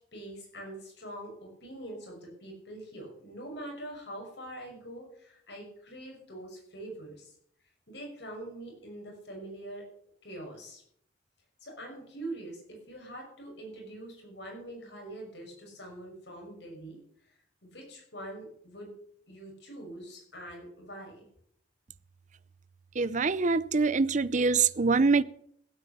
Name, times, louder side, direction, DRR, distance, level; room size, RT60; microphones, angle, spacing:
voice 1, 0.1-7.3 7.9-9.8 10.2-10.8 11.6-17.0 17.2-17.3 17.6-18.9 19.3-21.2, right 1 dB, 65° left, 6.3 m, -44 dB
voice 2, 23.0-25.2, right 4 dB, 40° right, 0.6 m, -24 dB
16.0 x 8.8 x 6.8 m
head